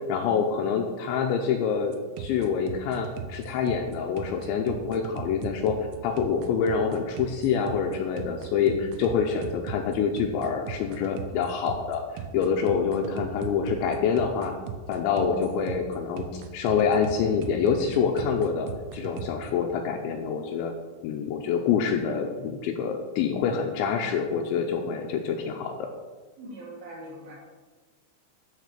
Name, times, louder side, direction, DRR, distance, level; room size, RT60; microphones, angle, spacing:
voice 1, 0.1-5.8 6.0-12.0 12.3-14.5 14.9-20.7 21.0-25.9, left 6 dB, 80° left, 3 dB, 2.8 m, -26 dB
sound 1, 1.8-19.5, right 6 dB, 80° right, 2.6 m, -38 dB
voice 2, 26.4-27.4, right 1 dB, 60° right, -3 dB, 2.9 m, -41 dB
13.0 x 4.6 x 6.7 m, 1.3 s
omnidirectional pair, 5.8 m